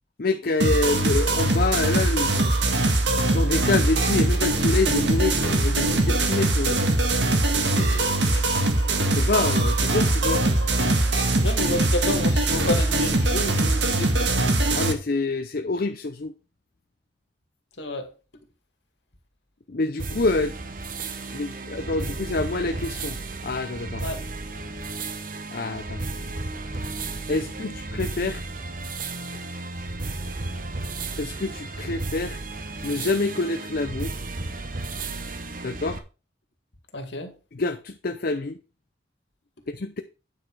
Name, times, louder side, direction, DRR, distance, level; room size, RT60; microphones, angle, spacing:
voice 1, 0.2-2.7 3.3-6.8 9.0-10.4 14.7-16.3 19.7-20.5 21.1-23.2 23.4-24.1 25.5-26.0 27.3-28.4 31.2-32.4 32.8-34.2 35.6-36.0 37.5-38.6 39.7-40.0, left 3 dB, 55° left, 0.6 m, -27 dB
sound 1, 0.6-14.9, right 2 dB, 75° right, 1.7 m, -22 dB
voice 2, 7.6-8.6 11.4-14.3 17.8-18.1 24.0-24.2 36.9-37.3, left 1 dB, 70° left, 2.2 m, -31 dB
sound 2, 20.0-36.0, right 3 dB, 50° right, 1.1 m, -33 dB
9.2 x 6.0 x 4.7 m
head